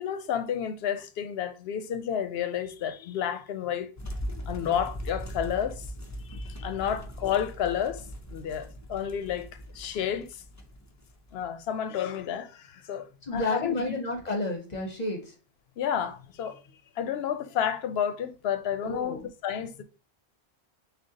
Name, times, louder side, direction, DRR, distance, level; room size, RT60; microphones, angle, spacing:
voice 1, 0.0-3.9 4.5-5.8 6.3-8.0 8.3-9.5 9.7-10.4 11.3-13.1 13.3-13.8 15.8-16.6 17.0-19.8, left 9 dB, 75° left, 0.8 m, -31 dB
sound 1, 4.0-11.6, equal, 25° left, 0.4 m, -40 dB
voice 2, 13.2-15.3 18.8-19.3, left 2 dB, 45° left, 0.8 m, -31 dB
6.2 x 2.4 x 2.7 m
omnidirectional pair, 1.1 m